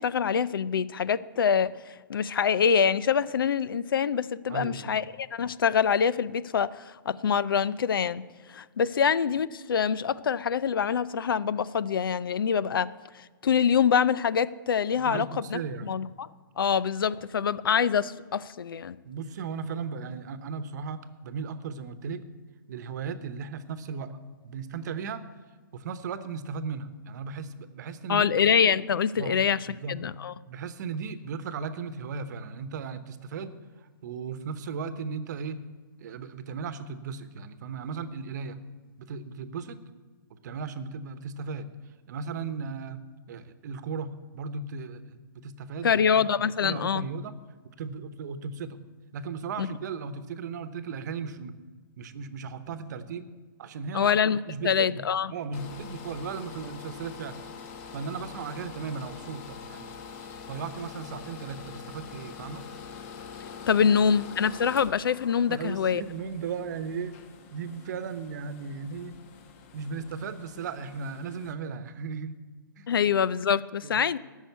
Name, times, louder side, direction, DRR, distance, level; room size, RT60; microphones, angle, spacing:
voice 1, 0.0-8.2 8.5-12.9 13.4-16.3 16.6-19.0 28.1-30.3 45.8-47.1 49.6-49.7 53.9-55.3 63.7-66.0 72.9-74.2, left 7 dB, 85° left, 18 dB, 0.5 m, -25 dB
voice 2, 4.5-5.0 15.0-16.0 19.0-22.3 22.7-24.2 24.4-25.2 25.7-28.3 29.2-29.4 29.6-30.0 30.5-33.5 34.0-35.6 36.0-38.6 39.0-39.8 40.3-41.7 42.1-43.0 43.3-47.3 47.8-48.8 49.1-51.6 52.0-53.3 53.6-54.1 54.5-57.4 57.9-60.0 60.4-62.6 65.5-67.2 67.5-69.2 69.7-72.3 72.8-72.9 73.8-74.0, right 5 dB, 55° right, 12 dB, 1.0 m, -36 dB
sound 1, 55.5-71.5, left 6 dB, 40° left, 1.2 m, -45 dB
13.0 x 6.5 x 8.1 m, 1.4 s
hypercardioid pair, 150°, 11 cm